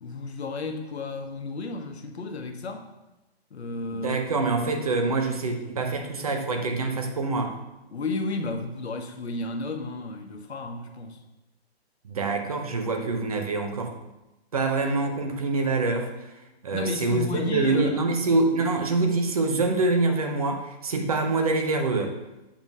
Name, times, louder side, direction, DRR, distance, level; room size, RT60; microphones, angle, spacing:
voice 1, 0.0-2.9 3.5-4.2 7.9-11.2 16.7-18.1 18.3-18.4, left 3 dB, 85° left, 5 dB, 1.1 m, -32 dB
voice 2, 3.9-7.5 12.1-13.9 14.5-16.1 16.6-22.1, right 3 dB, 35° right, 4 dB, 0.7 m, -25 dB
7.3 x 3.7 x 5.3 m, 1.0 s
hypercardioid pair, 170°, 32 cm